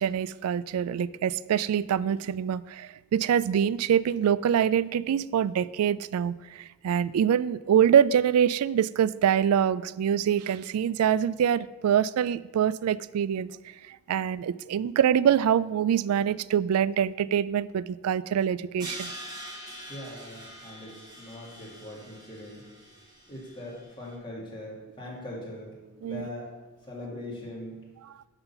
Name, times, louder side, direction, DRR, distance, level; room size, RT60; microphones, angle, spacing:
voice 1, 0.0-13.5 13.9-19.1 26.0-26.3, right 9 dB, 85° right, 17 dB, 0.3 m, -25 dB
Crash cymbal, 18.8-23.8, right 1 dB, 20° right, 1.5 m, -44 dB
voice 2, 19.9-22.7 23.3-25.7 26.0-26.5 26.9-27.8, left 1 dB, 20° left, -4 dB, 2.3 m, -41 dB
11.0 x 4.0 x 5.8 m, 1.2 s
head